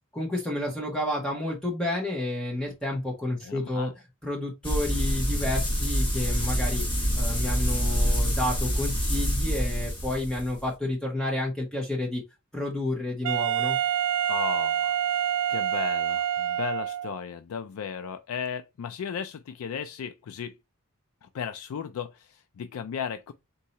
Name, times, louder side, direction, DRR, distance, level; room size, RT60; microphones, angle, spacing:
voice 1, 0.1-3.9 4.2-12.2 12.5-13.8, left 1 dB, 5° left, 0.9 m, -30 dB
voice 2, 3.4-3.9 14.3-20.5 21.2-23.3, left 7 dB, 80° left, 0.3 m, -35 dB
sound 1, 4.6-10.6, equal, 25° left, 1.3 m, -26 dB
Wind instrument woodwind instrument, 13.2-17.2, right 10 dB, 90° right, 0.5 m, -27 dB
4.0 x 2.7 x 4.2 m
head